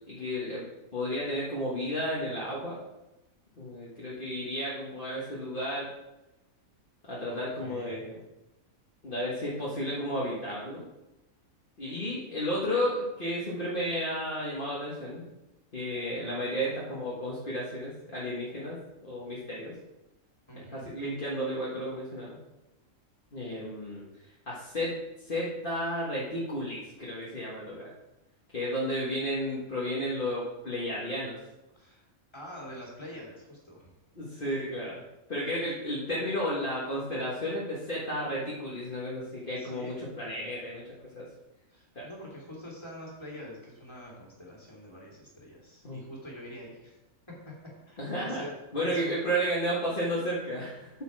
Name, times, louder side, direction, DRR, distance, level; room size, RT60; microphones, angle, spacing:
voice 1, 0.1-0.6 0.9-2.8 3.6-5.9 7.1-8.2 9.0-10.8 11.8-15.2 15.7-18.8 19.0-19.7 20.7-22.4 23.3-24.1 24.5-24.9 25.3-27.9 28.5-31.3 34.2-35.0 35.3-40.8 41.2-41.3 42.0-42.1 45.8-46.0 48.0-48.4 48.7-50.9, equal, 40° left, -7 dB, 1.8 m, -32 dB
voice 2, 7.3-8.0 20.5-20.9 31.7-32.1 32.3-33.9 39.6-40.0 41.7-47.0 47.3-47.5 47.9-48.5 48.8-49.2, left 1 dB, 20° left, -4 dB, 2.7 m, -45 dB
8.5 x 6.9 x 4.8 m, 0.97 s
omnidirectional pair, 1.4 m